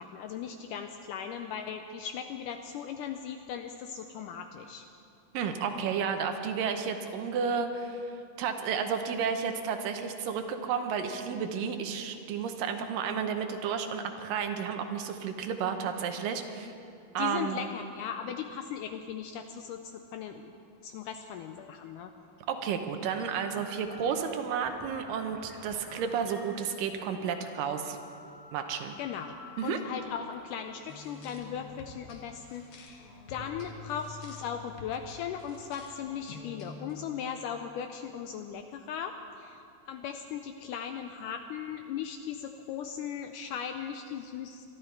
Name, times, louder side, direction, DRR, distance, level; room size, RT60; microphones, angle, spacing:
voice 1, 0.0-4.8 17.2-20.5 20.8-22.1 29.0-29.4 29.6-44.7, left 8 dB, 85° left, 6 dB, 1.9 m, -38 dB
voice 2, 5.3-16.7 17.1-17.6 22.5-28.0 28.5-28.9 29.6-29.8, right 6 dB, 75° right, 6 dB, 2.4 m, -32 dB
sound 1, 23.1-32.0, left 1 dB, 15° right, 1.7 m, -50 dB
sound 2, 30.9-36.9, left 4 dB, 55° left, 1.7 m, -47 dB
24.0 x 12.0 x 4.5 m, 2.6 s
omnidirectional pair, 4.2 m